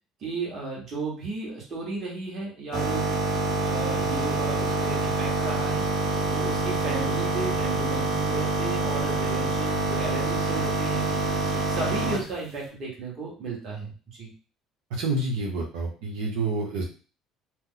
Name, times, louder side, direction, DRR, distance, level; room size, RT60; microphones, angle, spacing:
voice 1, 0.2-3.1 3.6-5.8 6.3-11.1 11.4-14.3, right 3 dB, 45° right, -3 dB, 1.5 m, -34 dB
sound 1, 2.7-12.3, right 2 dB, 65° right, 1.3 m, -26 dB
voice 2, 14.9-16.8, right 2 dB, 90° right, -3 dB, 0.8 m, -28 dB
2.8 x 2.1 x 3.8 m, 0.38 s
cardioid pair, 120°, 0 cm